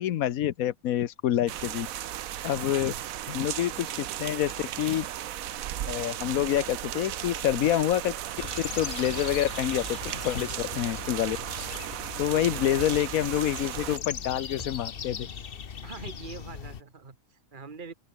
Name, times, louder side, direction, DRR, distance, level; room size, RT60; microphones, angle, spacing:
voice 1, 0.0-1.9 2.4-2.9 3.3-4.5 4.8-5.1 5.8-8.1 8.8-10.0 10.2-11.4 12.2-15.3, left 12 dB, 90° left, 1.2 m, -27 dB
sound 1, 1.5-14.0, right 12 dB, 80° right, 1.2 m, -36 dB
voice 2, 2.6-3.1 12.3-12.7 15.8-17.9, right 5 dB, 35° right, 1.9 m, -44 dB
sound 2, 8.4-16.8, left 7 dB, 45° left, 1.1 m, -39 dB
sound 3, 9.4-9.6 11.0-11.2 12.7-13.0 14.5-14.9, left 3 dB, 30° left, 2.0 m, -47 dB
open air
omnidirectional pair, 1.4 m